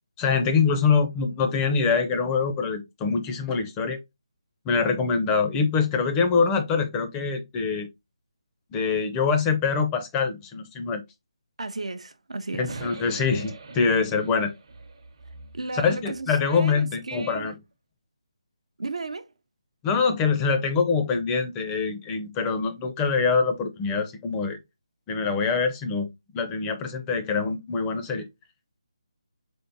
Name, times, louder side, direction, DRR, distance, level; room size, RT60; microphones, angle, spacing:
voice 1, 0.2-4.0 4.7-7.9 8.7-11.0 12.6-14.5 15.8-17.5 19.8-24.6 25.1-26.1 26.3-28.3, left 5 dB, 15° left, 0.4 m, -24 dB
voice 2, 11.6-12.8 15.5-17.5 18.8-19.3, right 3 dB, 80° right, 0.5 m, -34 dB
sound 1, 12.7-16.9, right 3 dB, 55° right, 0.8 m, -43 dB
3.7 x 3.5 x 2.6 m
figure-of-eight pair, 160°, 3 cm